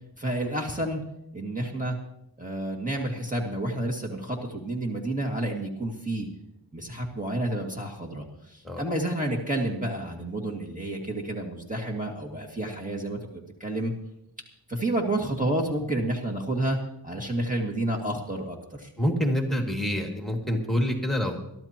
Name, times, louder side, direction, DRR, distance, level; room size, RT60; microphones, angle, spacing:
voice 1, 0.2-1.0 1.3-2.0 2.4-6.3 6.7-8.2 8.5-13.2 13.6-13.9 14.7-16.8 17.0-18.9, right 1 dB, 15° right, -1 dB, 2.1 m, -30 dB
voice 2, 19.0-21.4, equal, ahead, 1 dB, 2.2 m, -26 dB
22.5 x 13.0 x 3.0 m, 0.79 s
wide cardioid pair, 50°, 45 cm